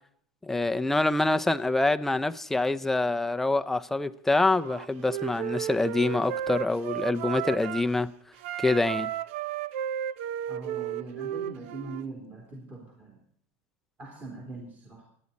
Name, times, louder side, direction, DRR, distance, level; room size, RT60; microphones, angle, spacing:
voice 1, 0.4-8.1 8.6-9.1, left 2 dB, 5° left, 0.5 m, -26 dB
Wind instrument woodwind instrument, 4.5-7.9 8.4-12.0, right 10 dB, 70° right, 0.6 m, -34 dB
voice 2, 10.5-13.2 14.0-15.0, right 3 dB, 20° right, 3.1 m, -41 dB
26.5 x 9.7 x 4.1 m
supercardioid pair, 155°, 7 cm